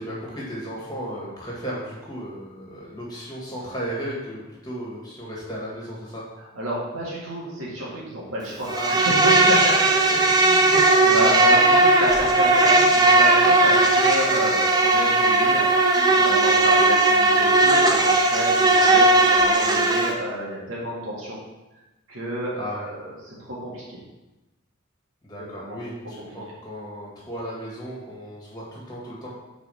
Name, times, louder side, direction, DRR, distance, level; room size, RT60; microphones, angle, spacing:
voice 1, 0.0-6.2 8.7-8.9 9.5-11.1 22.5-22.9 25.2-29.3, equal, 20° left, -5 dB, 1.8 m, -35 dB
voice 2, 6.4-9.7 10.3-10.7 11.1-21.4 22.1-24.0 25.4-25.8, equal, 80° right, -5 dB, 2.0 m, -31 dB
Insect, 8.7-20.1, right 2 dB, 20° right, 0.5 m, -17 dB
4.9 x 4.2 x 5.4 m, 1.1 s
head